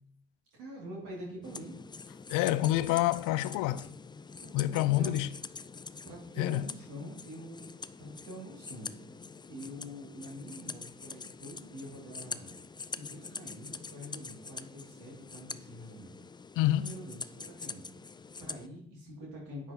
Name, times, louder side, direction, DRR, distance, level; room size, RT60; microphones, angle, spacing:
voice 1, 0.5-1.7 4.4-5.2 6.0-9.0 9.5-12.6 12.8-16.2 16.8-19.7, equal, 75° right, 2.4 m, -46 dB
sound 1, 1.4-18.7, left 4 dB, 15° left, 0.3 m, -45 dB
voice 2, 2.3-3.9 4.5-5.3 6.4-6.6 16.6-16.9, left 15 dB, 70° left, 0.5 m, -27 dB
9.5 x 6.0 x 2.8 m
hypercardioid pair, 40°, 33 cm